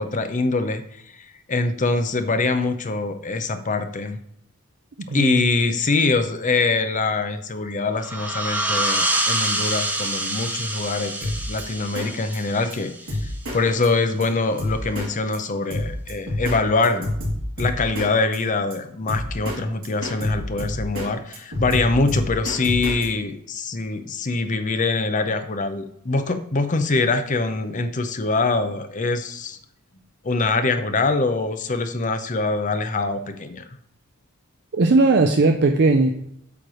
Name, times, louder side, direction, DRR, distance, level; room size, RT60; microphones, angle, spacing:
voice 1, 0.0-4.2 5.1-13.2 13.5-17.1 17.6-29.6 30.2-33.6, left 3 dB, 35° left, 9 dB, 0.6 m, -24 dB
voice 2, 5.1-5.4 34.7-36.1, right 3 dB, 50° right, 4 dB, 0.5 m, -17 dB
sound 1, 8.0-13.4, right 1 dB, 10° right, 0.9 m, -26 dB
Drum kit, 11.2-11.6 12.0-12.1 12.3-12.4 12.7-12.8 13.1-13.6 13.8-13.9 14.2-14.3 14.6-15.1 15.3-15.4 15.7-16.6 16.8-18.1 18.3-18.4 18.7-18.8 19.1-19.6 19.8-21.1 21.3-23.1, left 1 dB, 65° right, 3.1 m, -27 dB
8.5 x 3.3 x 6.1 m, 0.74 s
head